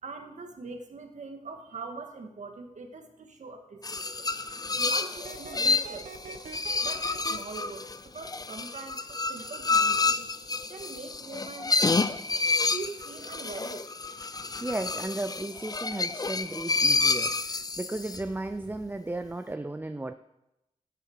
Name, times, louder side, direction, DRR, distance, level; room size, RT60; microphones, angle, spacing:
voice 1, 0.0-4.3 4.8-6.4 6.8-10.4 10.7-11.8 12.7-13.9, right 4 dB, 65° right, 5 dB, 1.8 m, -42 dB
sound 1, 3.8-18.3, left 3 dB, 30° left, 0.6 m, -29 dB
sound 2, 5.2-7.4, right 5 dB, 85° right, 1.2 m, -42 dB
voice 2, 14.6-20.1, right 2 dB, 15° right, 9 dB, 0.6 m, -35 dB
12.5 x 10.5 x 4.8 m, 0.88 s
cardioid pair, 70°, 13 cm